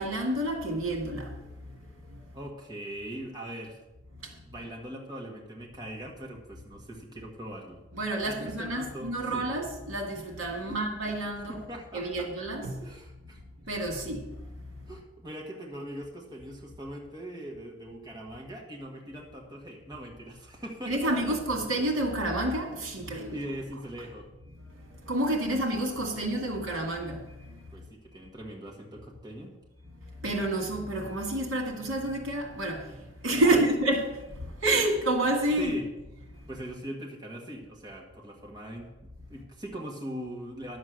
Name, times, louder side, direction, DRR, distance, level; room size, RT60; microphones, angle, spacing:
voice 1, 0.0-1.4 4.2-4.3 7.9-11.6 11.9-12.9 13.7-14.3 20.9-23.4 24.9-27.5 30.2-35.8, right 1 dB, 75° right, 2.2 m, -29 dB
voice 2, 2.3-3.8 4.4-7.8 8.3-9.6 10.7-10.8 11.5-12.3 12.8-13.4 14.9-21.3 23.3-24.3 27.7-29.5 33.4-33.7 35.6-35.9 36.5-38.9 39.3-40.8, right 1 dB, 20° right, 1.5 m, -41 dB
11.0 x 7.4 x 6.3 m
head